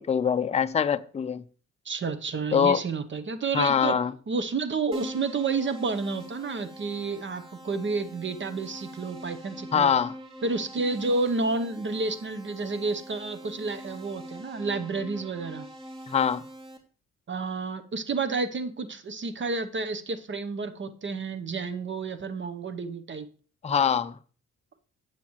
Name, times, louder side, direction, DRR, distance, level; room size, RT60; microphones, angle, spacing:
voice 1, 0.0-1.4 2.5-2.8 3.5-4.1 9.7-10.1 16.1-16.4 23.6-24.2, left 7 dB, 20° left, 0.5 m, -23 dB
voice 2, 1.8-4.0 4.3-9.9 10.4-15.7 17.3-23.3, right 4 dB, 40° right, 0.9 m, -30 dB
Keyboard (musical), 4.9-16.8, equal, 15° right, 2.5 m, -43 dB
11.5 x 8.6 x 3.1 m
cardioid pair, 90°, 30 cm